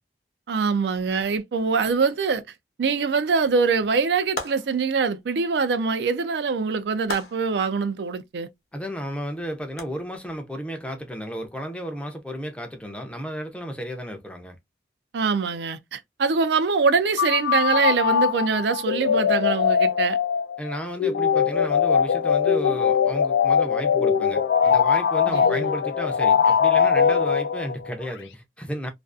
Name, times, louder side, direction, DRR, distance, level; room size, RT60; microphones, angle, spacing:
voice 1, 0.5-2.4 2.8-8.5 15.1-20.2 25.3-25.7, right 5 dB, 70° right, 0.4 m, -23 dB
sound 1, 4.4-5.0 7.1-7.6 9.8-9.9, left 2 dB, 65° left, 0.8 m, -34 dB
voice 2, 8.7-14.6 20.6-28.9, equal, 5° left, 0.5 m, -33 dB
sound 2, 17.2-27.9, left 7 dB, 90° left, 0.4 m, -21 dB
2.5 x 2.4 x 2.3 m
head